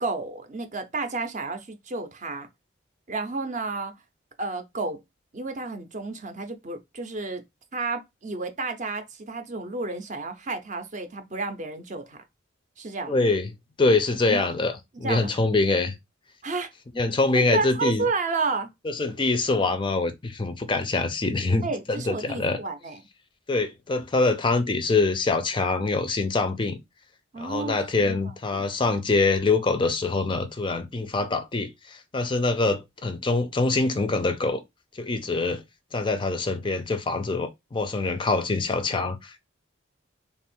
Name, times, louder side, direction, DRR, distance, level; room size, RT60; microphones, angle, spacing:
voice 1, 0.0-2.5 3.1-3.9 4.4-5.0 5.3-7.4 7.7-12.2 12.8-13.2 14.3-14.5 15.0-15.3 16.4-16.7 17.3-18.7 21.6-23.0 27.3-28.7, right 3 dB, 40° right, 0.6 m, -31 dB
voice 2, 13.1-13.5 13.8-14.7 15.0-15.9 17.0-18.1 18.9-21.7 22.1-22.6 23.5-26.8 27.4-34.6 34.9-35.6 35.9-39.4, left 3 dB, 25° left, 0.4 m, -24 dB
3.4 x 2.4 x 4.3 m
head